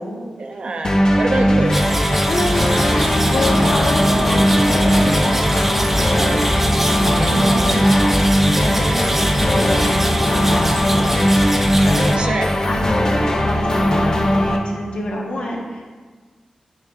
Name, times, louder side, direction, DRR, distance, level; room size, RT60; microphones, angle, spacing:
voice 1, 0.4-1.8 7.2-7.8 12.2-12.5, right 3 dB, 55° right, 5 dB, 0.6 m, -25 dB
sound 1, 0.8-14.6, equal, 35° left, 0.7 m, -18 dB
sound 2, 1.7-12.2, right 1 dB, 15° right, 0.4 m, -22 dB
voice 2, 2.3-3.0 3.3-6.4 7.3-12.3 12.6-15.8, left 1 dB, 65° left, -2 dB, 1.3 m, -27 dB
sound 3, 2.6-6.1, equal, 80° left, 1.0 m, -28 dB
8.6 x 6.2 x 2.5 m, 1.4 s
wide cardioid pair, 145°, 2 cm